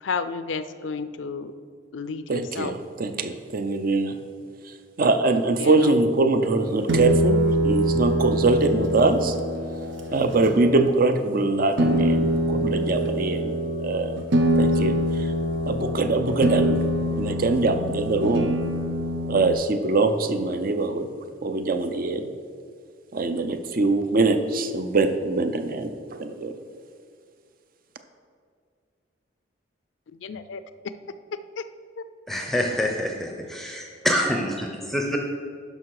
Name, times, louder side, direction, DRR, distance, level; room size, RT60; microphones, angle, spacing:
voice 1, 0.0-1.5 1.9-2.7 5.6-5.9 30.1-30.6 31.6-31.7 32.0-32.1, left 5 dB, 85° left, 12 dB, 0.5 m, -32 dB
voice 2, 2.3-4.2 5.0-9.3 10.1-14.2 14.6-15.3 15.7-16.8 17.1-18.5 19.3-21.1 21.4-22.2 23.1-26.5, right 3 dB, 50° right, 8 dB, 0.6 m, -23 dB
sound 1, 6.9-10.8 11.8-19.5, equal, 85° right, 1.0 m, -24 dB
voice 3, 32.3-35.2, equal, ahead, 1 dB, 0.6 m, -26 dB
12.0 x 5.3 x 4.8 m, 2.2 s
head